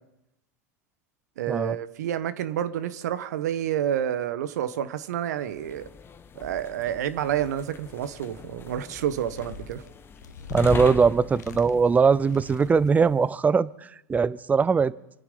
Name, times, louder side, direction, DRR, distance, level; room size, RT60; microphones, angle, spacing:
voice 1, 1.4-5.9 6.3-9.8, right 10 dB, 75° right, 14 dB, 1.2 m, -29 dB
sound 1, 5.4-13.2, left 5 dB, 25° left, 1.1 m, -41 dB
sound 2, 7.9-8.5 8.9-10.8 11.3-11.9 12.2-12.9, left 6 dB, 90° left, 1.2 m, -42 dB
voice 2, 10.5-13.7 14.1-14.9, right 5 dB, 15° right, 20 dB, 0.5 m, -21 dB
27.0 x 9.6 x 5.4 m, 0.89 s
hypercardioid pair, 100°, 9 cm